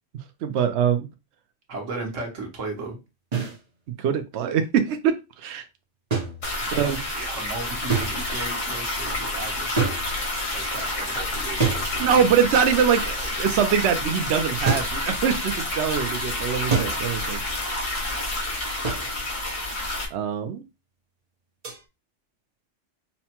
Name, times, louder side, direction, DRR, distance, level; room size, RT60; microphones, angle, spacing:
voice 1, 0.4-1.1 4.0-5.7 6.8-7.0 12.0-17.4 20.1-20.6, right 7 dB, 70° right, 7 dB, 0.8 m, -23 dB
voice 2, 1.7-3.0 6.6-10.0 10.5-12.2, right 3 dB, 90° right, 1 dB, 1.5 m, -35 dB
sound 1, 3.3-3.6 6.1-6.9 7.9-8.5 9.8-10.5 11.6-12.4 14.7-15.1 16.7-17.2 18.8-19.3 21.6-21.8, right 5 dB, 35° right, 0.8 m, -27 dB
sound 2, 6.4-20.0, left 2 dB, 90° left, 1.8 m, -29 dB
5.5 x 2.1 x 2.9 m, 0.25 s
omnidirectional pair, 1.3 m